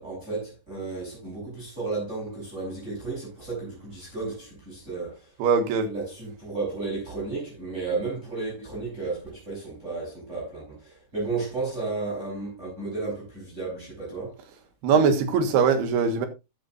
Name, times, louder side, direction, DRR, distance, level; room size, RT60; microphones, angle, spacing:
voice 1, 0.0-5.3 5.8-14.4, right 3 dB, 15° right, 7.4 m, -33 dB
voice 2, 5.4-5.9 14.8-16.3, right 5 dB, 85° right, 3.5 m, -21 dB
14.5 x 9.7 x 2.6 m
omnidirectional pair, 4.6 m